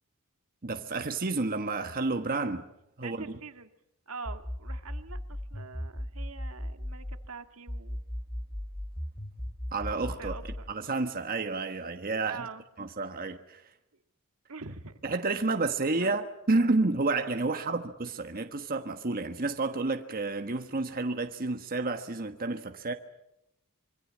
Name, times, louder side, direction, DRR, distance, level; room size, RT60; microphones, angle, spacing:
voice 1, 0.6-2.6 3.0-3.3 9.7-10.3 10.7-12.5 12.8-13.6 15.0-22.9, right 3 dB, 40° right, 1.4 m, -30 dB
voice 2, 3.0-3.7 4.1-8.0 10.2-10.7 12.2-12.6 14.5-15.0 16.0-16.1 17.5-17.8, right 4 dB, 70° right, 1.8 m, -44 dB
sound 1, 4.3-7.3 7.7-10.7, equal, 20° left, 2.9 m, -37 dB
25.5 x 24.5 x 7.4 m
head